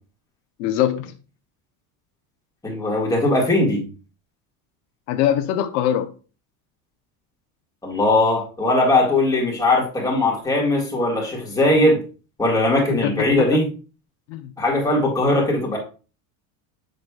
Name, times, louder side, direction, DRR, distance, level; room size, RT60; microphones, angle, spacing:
voice 1, 0.6-1.1 5.1-6.1 13.0-13.3 14.3-14.5, left 11 dB, 85° left, 0.8 m, -22 dB
voice 2, 2.6-3.9 7.8-12.0 12.4-13.7 14.6-15.8, left 2 dB, 10° left, 1.8 m, -19 dB
6.4 x 6.4 x 2.4 m
cardioid pair, 155°, 43 cm